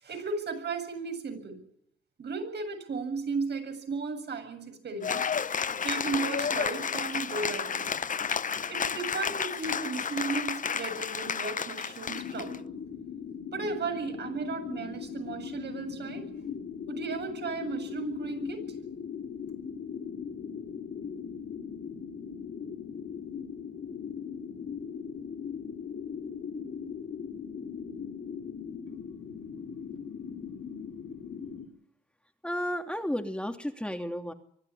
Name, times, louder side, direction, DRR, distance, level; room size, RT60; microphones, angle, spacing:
voice 1, 0.0-1.6 2.2-5.3 5.8-7.9 8.7-12.5 13.5-16.3 16.9-18.6, right 4 dB, 60° right, 6 dB, 7.7 m, -35 dB
Cheering / Applause, 5.0-12.6, left 6 dB, 40° left, 0.9 m, -31 dB
sound 1, 12.1-31.7, left 7 dB, 60° left, 4.7 m, -39 dB
voice 2, 32.4-34.3, equal, 5° left, 5 dB, 2.8 m, -32 dB
24.0 x 13.0 x 9.9 m, 0.70 s
supercardioid pair, 60°, 20 cm